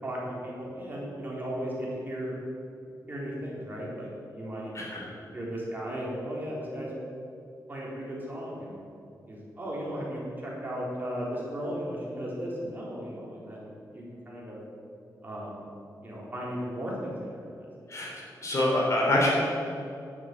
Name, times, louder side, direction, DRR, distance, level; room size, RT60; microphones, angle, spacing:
voice 1, 0.0-2.3 3.1-4.7 5.3-6.9 7.7-8.8 9.3-14.6 15.2-15.6 16.0-17.4, equal, 25° right, -5 dB, 3.9 m, -36 dB
voice 2, 4.7-5.1 17.9-18.1 18.4-19.3, left 1 dB, 45° left, -4 dB, 4.0 m, -25 dB
11.0 x 9.5 x 7.7 m, 2.5 s
wide cardioid pair, 130°, 7 cm